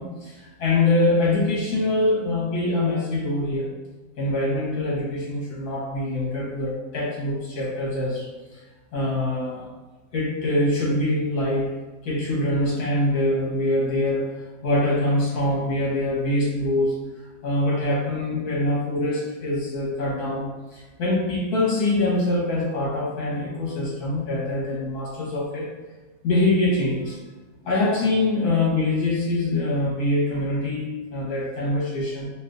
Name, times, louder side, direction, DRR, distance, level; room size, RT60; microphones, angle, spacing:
voice 1, 0.0-3.7 4.2-8.6 8.9-9.7 10.1-11.7 12.0-14.3 14.6-17.0 17.4-25.7 26.2-27.2 27.6-32.3, left 2 dB, 80° left, -5 dB, 1.8 m, -24 dB
4.9 x 2.4 x 2.6 m, 1.3 s
omnidirectional pair, 1.6 m